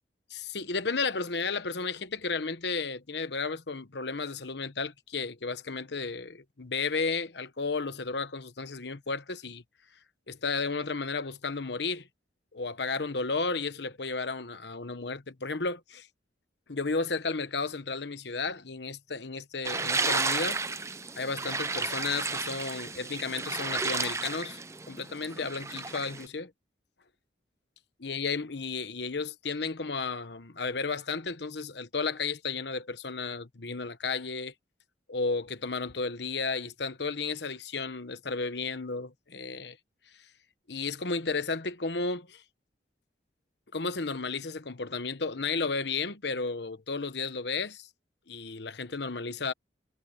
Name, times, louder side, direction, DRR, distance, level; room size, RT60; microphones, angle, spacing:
voice 1, 0.3-9.6 10.3-12.1 12.5-16.1 16.7-20.6 21.1-24.6 24.9-26.5 28.0-34.5 35.1-39.8 40.7-42.4 43.7-47.9 48.3-49.5, left 4 dB, 65° left, 1.1 m, -33 dB
sound 1, 19.6-26.3, right 4 dB, 15° right, 0.7 m, -32 dB
head